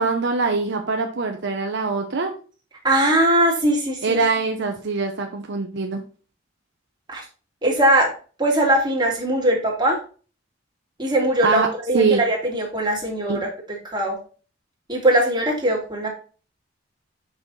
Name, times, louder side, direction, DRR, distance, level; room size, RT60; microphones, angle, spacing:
voice 1, 0.0-2.3 4.0-6.0 11.4-11.7 11.9-12.2 13.3-13.4, right 4 dB, 65° right, 4 dB, 0.8 m, -23 dB
voice 2, 2.8-4.2 7.1-7.2 7.6-8.1 8.4-10.0 11.0-13.5 13.9-14.2 14.9-16.1, right 1 dB, 25° right, -1 dB, 2.1 m, -20 dB
5.8 x 5.6 x 4.0 m, 0.38 s
head